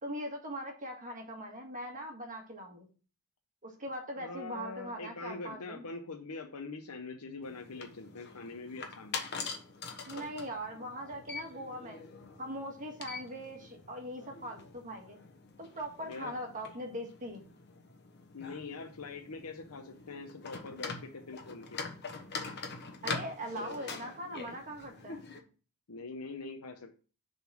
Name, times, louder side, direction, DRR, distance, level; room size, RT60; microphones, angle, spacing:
voice 1, 0.0-2.9 3.6-5.8 10.1-12.0 12.4-15.2 15.6-17.5 23.0-25.2, equal, 35° right, 2 dB, 1.7 m, -41 dB
voice 2, 4.2-9.3 16.0-16.3 18.3-21.8 23.5-23.7 25.9-27.0, left 3 dB, 75° left, 4 dB, 0.8 m, -43 dB
sound 1, 7.4-25.4, left 4 dB, 50° left, 1.2 m, -44 dB
7.0 x 4.0 x 6.1 m, 0.38 s
head